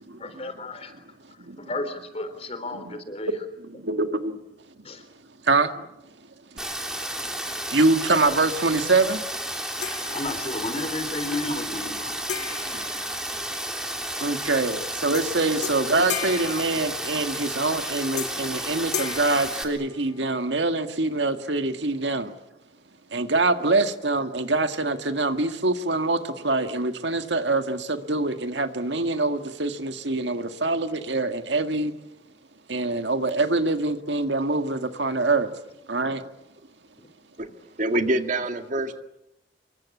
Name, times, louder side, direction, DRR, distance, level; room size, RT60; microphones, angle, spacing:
voice 1, 0.2-1.0 1.6-3.3 4.8-5.0 10.1-12.3, left 2 dB, 35° left, 10 dB, 3.6 m, -33 dB
voice 2, 3.7-4.4 5.4-5.7 7.7-9.2 12.7-12.8 14.2-22.3 23.1-31.9 32.7-35.5 35.9-36.2, right 3 dB, 70° right, 7 dB, 1.9 m, -24 dB
Rain, 6.6-19.6, right 1 dB, 5° right, 3.2 m, -32 dB
sound 1, 9.8-10.8 12.3-13.9 15.1-15.3 15.6-17.5 18.2-18.6 18.9-20.4, left 8 dB, 65° left, 2.1 m, -36 dB
voice 3, 37.8-39.0, right 1 dB, 45° right, 6 dB, 2.0 m, -25 dB
27.5 x 24.0 x 8.5 m, 0.87 s
head